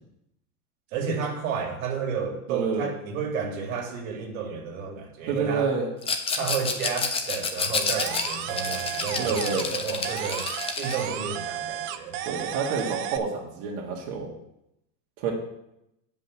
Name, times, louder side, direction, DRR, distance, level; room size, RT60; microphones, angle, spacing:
voice 1, 0.9-5.7 6.4-10.5 10.8-12.2, right 6 dB, 65° right, 2 dB, 2.2 m, -31 dB
voice 2, 2.5-2.8 5.3-5.9 9.2-9.7 12.3-14.3 15.2-15.3, right 5 dB, 50° right, -3 dB, 1.8 m, -28 dB
Rattle, 6.0-11.1, left 4 dB, 15° left, 0.6 m, -29 dB
sound 1, 8.0-9.8 10.0-13.2, right 10 dB, 30° right, 0.4 m, -33 dB
8.2 x 5.4 x 7.3 m, 0.84 s
supercardioid pair, 155°, 45 cm